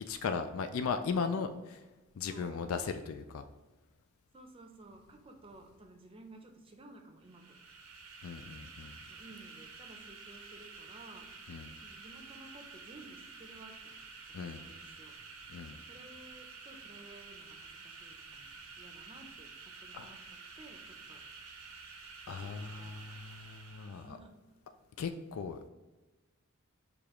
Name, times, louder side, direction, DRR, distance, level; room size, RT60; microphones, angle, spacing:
voice 1, 0.1-1.8 2.2-3.4 8.2-9.0 11.5-11.7 14.3-14.6 15.5-15.8 19.9-20.1 22.3-24.1 25.0-25.6, left 5 dB, 70° left, 8 dB, 0.3 m, -37 dB
voice 2, 2.3-2.7 4.3-7.6 9.1-11.3 11.8-14.1 14.4-15.2 15.9-21.2 22.3-23.2 23.8-24.3, right 2 dB, 25° right, 3 dB, 0.6 m, -55 dB
sound 1, 7.2-24.1, right 4 dB, 85° right, 0.7 m, -50 dB
6.6 x 2.4 x 3.0 m, 1.1 s
head